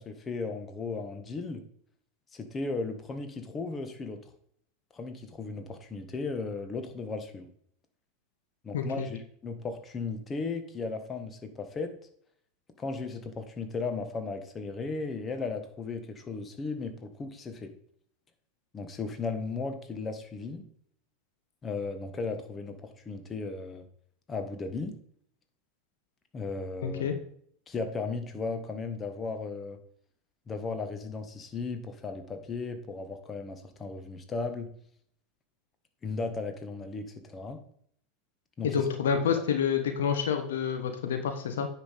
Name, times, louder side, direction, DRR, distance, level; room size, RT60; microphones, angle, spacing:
voice 1, 0.0-1.6 2.3-4.2 4.9-7.5 8.6-11.9 12.8-17.7 18.7-20.6 21.6-23.8 24.3-25.0 26.3-27.0 27.7-29.8 30.5-34.7 36.0-37.6 38.6-38.8, left 4 dB, 25° left, 7 dB, 1.6 m, -36 dB
voice 2, 8.7-9.1 26.8-27.2 38.6-41.7, left 7 dB, 75° left, 6 dB, 1.3 m, -28 dB
9.7 x 5.7 x 5.3 m, 0.62 s
hypercardioid pair, 85°, 0 cm